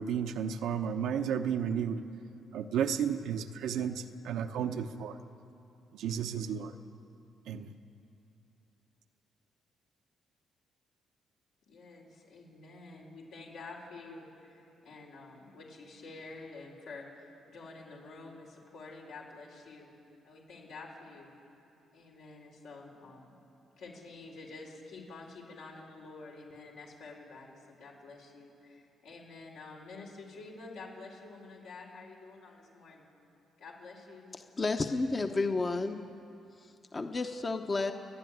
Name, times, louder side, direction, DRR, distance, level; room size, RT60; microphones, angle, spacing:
voice 1, 0.0-2.0 2.5-5.2 5.9-6.7 7.5-7.7, right 8 dB, 80° right, 7 dB, 0.9 m, -33 dB
voice 2, 11.6-19.9 20.2-21.3 21.9-23.3 23.8-33.1 33.6-34.4, left 3 dB, 85° left, -2 dB, 4.6 m, -49 dB
voice 3, 34.6-36.0 36.6-37.9, left 3 dB, 30° left, 6 dB, 0.9 m, -31 dB
28.5 x 10.0 x 9.4 m, 2.8 s
cardioid pair, 90°, 0 cm